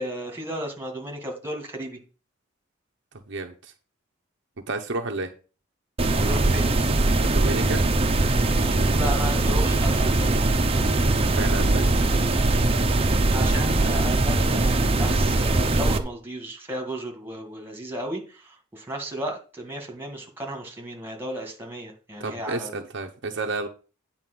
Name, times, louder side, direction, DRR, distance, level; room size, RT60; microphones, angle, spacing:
voice 1, 0.0-2.0 6.2-6.7 8.9-10.4 13.3-22.8, right 1 dB, 10° right, 2 dB, 2.0 m, -34 dB
voice 2, 3.3-3.7 4.7-5.3 7.2-7.8 11.2-12.0 22.2-23.7, right 3 dB, 60° right, 4 dB, 0.9 m, -31 dB
sound 1, 6.0-16.0, right 2 dB, 30° right, 0.9 m, -21 dB
9.3 x 4.4 x 6.1 m, 0.35 s
head